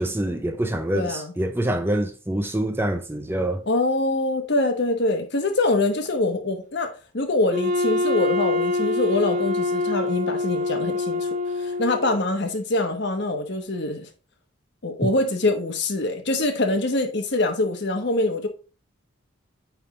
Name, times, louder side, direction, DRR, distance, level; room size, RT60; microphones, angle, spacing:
voice 1, 0.0-3.7 15.0-15.1, right 1 dB, 10° right, 0.4 m, -25 dB
voice 2, 0.9-1.3 3.7-11.3 11.6-14.1 14.8-18.5, left 2 dB, 55° left, 1.1 m, -24 dB
Wind instrument woodwind instrument, 7.5-12.2, left 2 dB, 35° right, 1.3 m, -25 dB
9.0 x 3.5 x 3.6 m
head